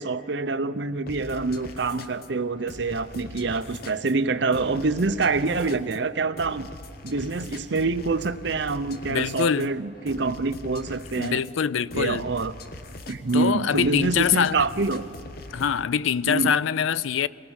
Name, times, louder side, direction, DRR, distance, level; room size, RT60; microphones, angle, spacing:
voice 1, 0.0-6.7 7.0-11.4 11.9-12.5 13.1-15.0 16.3-16.5, right 3 dB, 60° right, 0.7 m, -26 dB
sound 1, 1.1-15.8, left 2 dB, 50° left, 1.0 m, -42 dB
voice 2, 9.1-9.7 11.2-12.3 13.3-14.6 15.5-17.3, left 7 dB, 80° left, 0.4 m, -24 dB
24.0 x 19.0 x 6.5 m
head